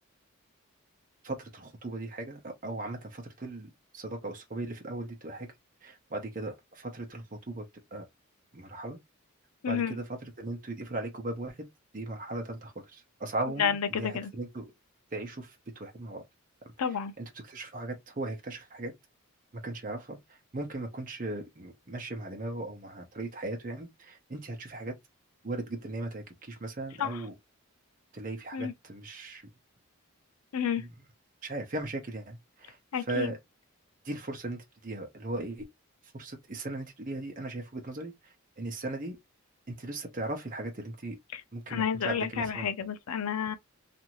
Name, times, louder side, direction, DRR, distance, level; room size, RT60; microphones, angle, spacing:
voice 1, 1.2-5.5 5.8-7.6 7.9-8.0 8.5-9.0 9.7-11.7 11.9-14.7 15.1-16.2 16.8-18.9 19.6-20.2 20.5-24.9 25.4-27.3 28.1-29.4 30.8-30.9 31.4-32.8 33.1-33.4 34.0-35.6 36.1-39.2 39.7-41.2 41.5-42.7, right 2 dB, 35° right, 0.7 m, -38 dB
voice 2, 9.6-10.0 13.6-14.3 16.8-17.1 27.0-27.2 28.5-28.7 30.5-30.8 32.9-33.3 41.3-41.4 41.7-43.5, left 7 dB, 90° left, 0.5 m, -30 dB
2.7 x 2.5 x 2.9 m
head